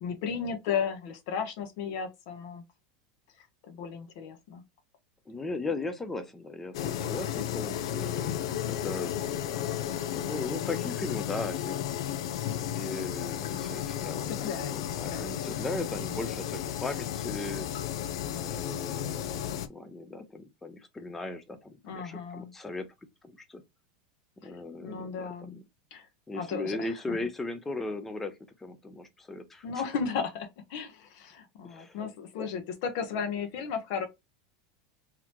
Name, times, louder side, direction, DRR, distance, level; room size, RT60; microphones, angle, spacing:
voice 1, 0.0-2.6 3.7-4.6 10.5-10.7 14.3-14.8 15.1-15.3 15.7-15.8 18.2-18.6 21.8-22.5 24.4-24.5 24.8-25.6 25.9-26.1 26.3-27.2 29.6-34.1, left 6 dB, 55° left, 1.1 m, -35 dB
voice 2, 5.3-9.1 9.5-9.9 10.1-11.7 12.5-17.7 18.3-22.9 23.5-23.6 24.4-25.6 26.3-29.6 31.6-32.0, left 2 dB, 10° left, 0.6 m, -38 dB
sound 1, 6.7-19.7, left 11 dB, 85° left, 0.5 m, -33 dB
3.9 x 2.9 x 3.0 m
supercardioid pair, 155°, 3 cm